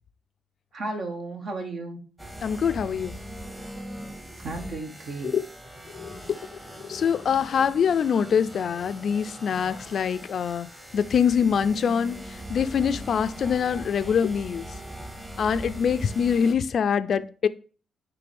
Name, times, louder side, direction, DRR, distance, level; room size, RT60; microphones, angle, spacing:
voice 1, 0.7-2.0 4.4-5.3, right 2 dB, 55° right, 1.4 m, -34 dB
sound 1, 2.2-16.5, right 1 dB, 15° right, 1.3 m, -40 dB
voice 2, 2.4-3.2 5.2-5.4 5.9-6.4 6.8-10.7 10.9-14.7 15.4-17.5, left 7 dB, 55° left, 0.4 m, -24 dB
9.3 x 3.3 x 3.5 m
cardioid pair, 90°, 0 cm